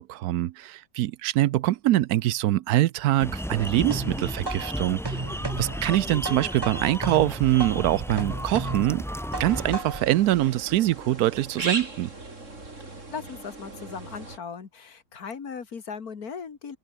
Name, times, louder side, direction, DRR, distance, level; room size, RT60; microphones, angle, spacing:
voice 1, 0.0-5.2 5.6-9.0 9.4-12.1, right 14 dB, 75° right, 1.0 m, -24 dB
sound 1, 3.2-9.8, equal, ahead, 4.1 m, -34 dB
sound 2, 3.9-10.2, right 2 dB, 15° right, 1.2 m, -35 dB
sound 3, 9.3-14.4, right 2 dB, 45° right, 4.7 m, -38 dB
voice 2, 12.9-16.8, left 6 dB, 65° left, 2.4 m, -38 dB
omnidirectional pair, 1.7 m